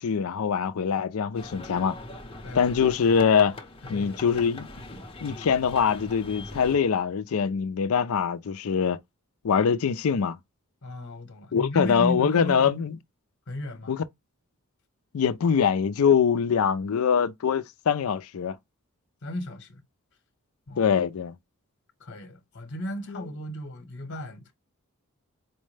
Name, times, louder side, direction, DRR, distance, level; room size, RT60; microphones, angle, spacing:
voice 1, 0.0-1.9 2.5-3.6 3.9-4.7 5.2-9.0 9.4-10.4 11.5-12.9 13.9-14.0 15.1-18.5 20.8-21.3, left 6 dB, 70° left, 0.4 m, -23 dB
sound 1, 1.3-6.8, left 2 dB, 25° left, 0.7 m, -41 dB
voice 2, 3.8-4.4 10.8-12.8 13.5-14.0 19.2-19.8 20.7-21.0 22.0-24.5, left 1 dB, 55° left, 1.0 m, -35 dB
4.5 x 2.1 x 3.2 m
head